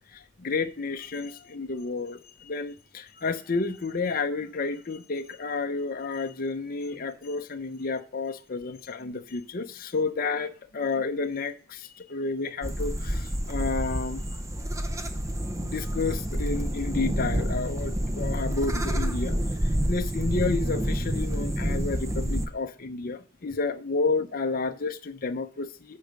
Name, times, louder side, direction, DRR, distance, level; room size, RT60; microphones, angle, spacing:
voice 1, 0.1-14.2 15.6-26.0, left 4 dB, 40° left, 0.7 m, -31 dB
sound 1, 12.6-22.5, equal, 15° right, 0.6 m, -28 dB
8.4 x 4.8 x 6.6 m
head